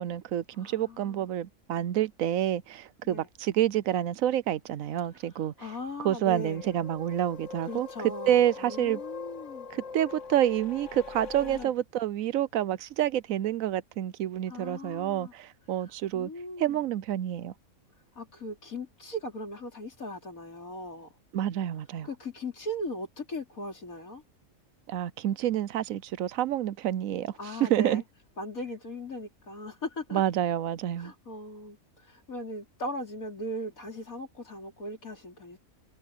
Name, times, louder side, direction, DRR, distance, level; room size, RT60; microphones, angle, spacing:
voice 1, 0.0-5.5 6.0-7.9 8.3-9.0 9.7-16.3 16.6-17.5 21.3-22.1 24.9-27.3 27.6-28.0 30.1-31.1, right 11 dB, 75° right, 1.1 m, -28 dB
voice 2, 0.6-1.3 3.0-3.3 5.6-6.8 7.6-9.7 11.4-11.7 14.5-15.3 16.1-16.8 18.2-21.1 22.0-24.2 27.4-28.0 28.4-30.2 31.0-31.8 32.1-35.6, left 1 dB, 90° left, 4.5 m, -38 dB
sound 1, 6.5-11.7, left 5 dB, 60° left, 2.0 m, -42 dB
open air
omnidirectional pair, 1.4 m